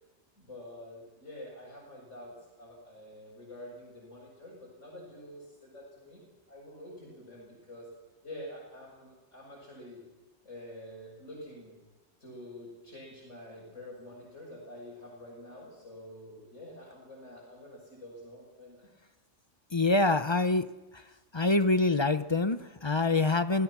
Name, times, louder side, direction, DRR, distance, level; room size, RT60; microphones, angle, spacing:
voice 1, 0.4-6.2 6.5-7.9 8.2-10.0 10.4-11.8 12.2-18.9, left 1 dB, 80° left, -6 dB, 7.0 m, -47 dB
voice 2, 19.7-20.7 20.9-21.0 21.3-23.6, left 3 dB, 30° left, 11 dB, 0.6 m, -25 dB
27.5 x 17.0 x 6.0 m, 1.2 s
omnidirectional pair, 1.2 m